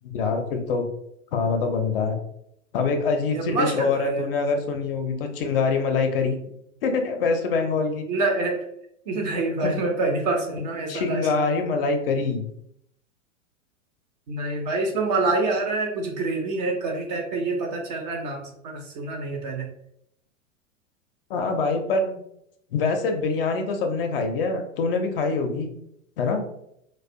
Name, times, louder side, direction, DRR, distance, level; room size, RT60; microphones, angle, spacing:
voice 1, 0.0-0.9 1.3-2.2 2.7-6.4 6.8-8.0 9.6-9.8 10.9-12.5 21.3-22.2 22.7-25.7 26.2-26.4, left 4 dB, 45° left, 5 dB, 0.4 m, -24 dB
voice 2, 3.3-4.3 8.1-8.6 9.1-11.3 14.3-19.7, right 3 dB, 35° right, 2 dB, 0.4 m, -26 dB
2.3 x 2.1 x 2.5 m, 0.75 s
figure-of-eight pair, 95°, 39 cm